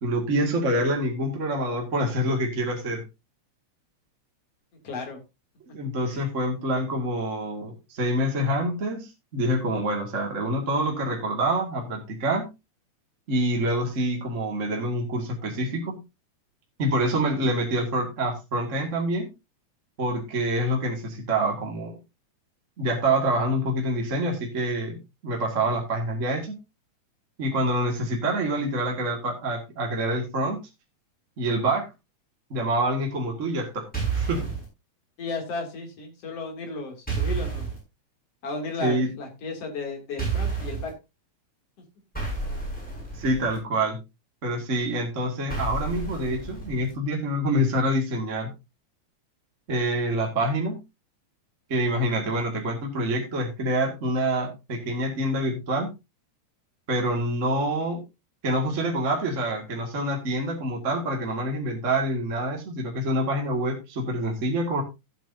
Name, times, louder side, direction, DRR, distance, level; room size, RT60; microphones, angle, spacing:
voice 1, 0.0-3.0 5.7-12.4 13.3-16.0 16.8-19.3 20.0-21.9 22.8-26.6 27.4-30.6 31.4-31.9 32.5-33.9 34.1-34.4 38.8-39.1 43.1-44.0 44.4-48.5 49.7-50.8 51.7-55.9 56.9-58.0 58.4-64.8, right 1 dB, 30° right, 1 dB, 2.1 m, -26 dB
voice 2, 4.8-5.2 6.0-6.3 35.2-37.7 38.4-40.9, left 3 dB, 55° left, 2 dB, 3.8 m, -34 dB
sound 1, 33.9-34.6 37.1-37.8 40.2-40.9 42.1-43.6 45.5-46.9, right 4 dB, 5° left, 7.7 m, -30 dB
15.0 x 8.5 x 2.7 m, 0.25 s
omnidirectional pair, 3.4 m